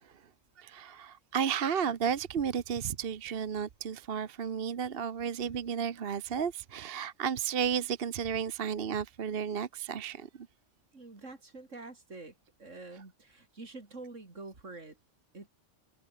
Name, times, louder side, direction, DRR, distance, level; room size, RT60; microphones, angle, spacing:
voice 1, 0.6-10.5, right 7 dB, 50° right, 1.1 m, -33 dB
voice 2, 10.9-15.0 15.3-15.5, right 3 dB, 80° right, 4.1 m, -47 dB
open air
omnidirectional pair, 1.3 m